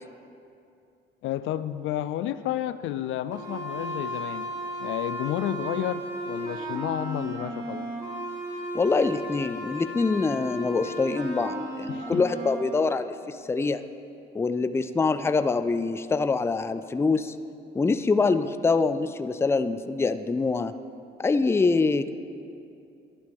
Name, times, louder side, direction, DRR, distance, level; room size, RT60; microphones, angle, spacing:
voice 1, 1.2-4.5 4.8-7.9 11.9-12.2, left 12 dB, 80° left, 13 dB, 0.4 m, -31 dB
sound 1, 3.3-12.6, right 1 dB, 20° right, 2.2 m, -34 dB
voice 2, 8.7-13.8 14.3-17.3 17.7-20.7 21.2-22.1, left 4 dB, 15° left, 10 dB, 0.4 m, -25 dB
11.0 x 11.0 x 3.5 m, 2.6 s
cardioid pair, 90°, 20 cm